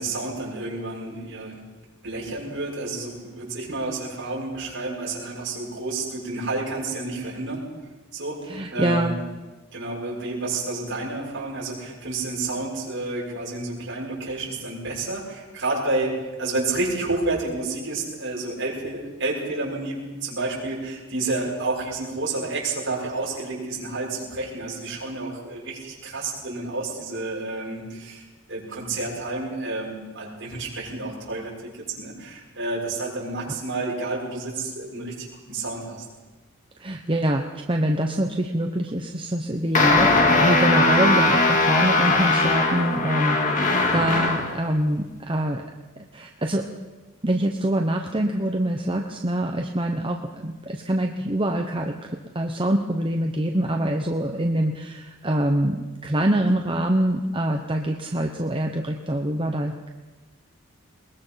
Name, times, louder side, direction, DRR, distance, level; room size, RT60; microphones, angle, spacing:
voice 1, 0.0-1.6 2.0-7.6 8.1-8.4 8.7-9.1 9.7-36.0, right 2 dB, 55° right, -3 dB, 6.7 m, -30 dB
voice 2, 8.5-9.2 36.8-45.6 46.1-46.6 47.2-59.9, right 1 dB, 25° right, 2 dB, 1.0 m, -25 dB
sound 1, 39.7-44.6, left 3 dB, 35° left, 2.1 m, -20 dB
21.0 x 21.0 x 5.9 m, 1.2 s
head